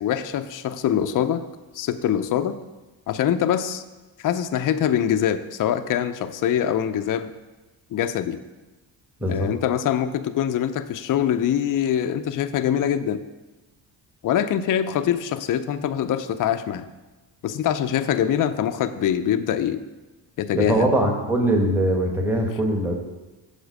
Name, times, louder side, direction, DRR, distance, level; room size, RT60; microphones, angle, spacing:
voice 1, 0.0-1.4 1.7-2.6 3.1-3.8 4.2-7.3 7.9-8.4 9.3-13.2 14.2-16.9 17.4-19.8 20.4-20.9, left 9 dB, 45° left, 9 dB, 0.5 m, -24 dB
voice 2, 9.2-9.5 20.5-22.9, right 1 dB, 5° right, 1 dB, 1.2 m, -21 dB
7.1 x 4.4 x 6.4 m, 1.1 s
cardioid pair, 110°, 44 cm